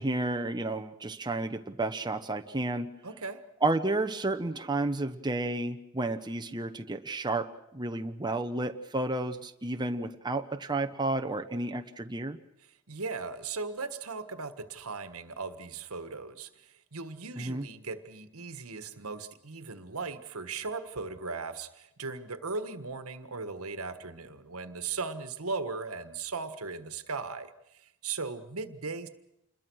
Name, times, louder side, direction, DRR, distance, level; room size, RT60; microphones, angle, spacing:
voice 1, 0.0-2.9 3.6-7.5 7.7-12.4 17.4-17.6, right 2 dB, 20° right, 6 dB, 1.0 m, -31 dB
voice 2, 3.0-3.4 12.7-29.1, right 4 dB, 85° right, 10 dB, 1.6 m, -38 dB
28.0 x 21.5 x 6.4 m, 0.84 s
head